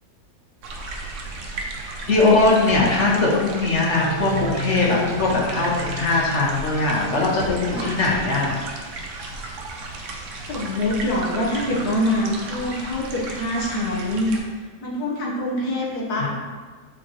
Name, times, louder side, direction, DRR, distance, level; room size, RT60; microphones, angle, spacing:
sound 1, 0.6-14.4, right 3 dB, 60° right, 1.0 m, -34 dB
voice 1, 2.0-8.6 16.2-16.3, left 2 dB, 50° left, -4 dB, 1.4 m, -20 dB
sound 2, 3.9-8.4, left 2 dB, 10° left, 1.1 m, -33 dB
voice 2, 10.5-14.5 14.8-16.3, left 1 dB, 80° left, -4 dB, 1.8 m, -25 dB
7.0 x 4.5 x 3.1 m, 1.5 s
omnidirectional pair, 1.6 m